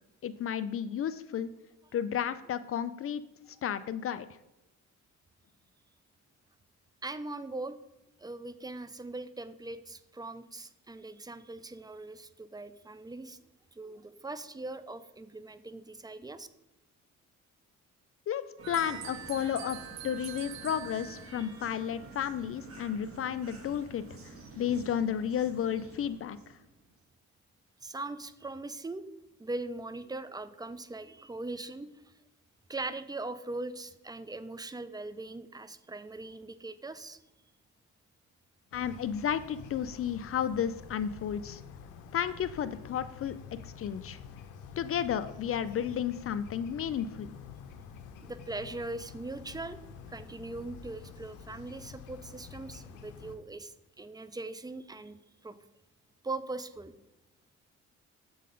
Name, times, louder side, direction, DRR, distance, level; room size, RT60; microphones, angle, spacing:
voice 1, 0.2-1.5 1.9-3.2 3.6-4.3 18.3-19.8 20.0-26.4 38.7-41.6 42.1-43.4 43.6-44.2 44.8-47.4, left 9 dB, 50° left, 14 dB, 0.4 m, -32 dB
voice 2, 7.0-7.8 8.2-13.4 13.7-16.5 27.8-29.1 29.4-31.9 32.7-37.2 48.2-49.8 50.1-55.2 55.4-55.6 56.2-56.9, right 2 dB, 15° right, 12 dB, 0.5 m, -40 dB
sound 1, 18.6-26.9, right 2 dB, 50° right, 2.0 m, -49 dB
sound 2, 18.6-21.5, right 10 dB, 65° right, 0.6 m, -44 dB
sound 3, 38.7-53.4, left 6 dB, 80° left, 0.8 m, -48 dB
7.4 x 3.9 x 5.2 m, 0.97 s
cardioid pair, 90°, 30 cm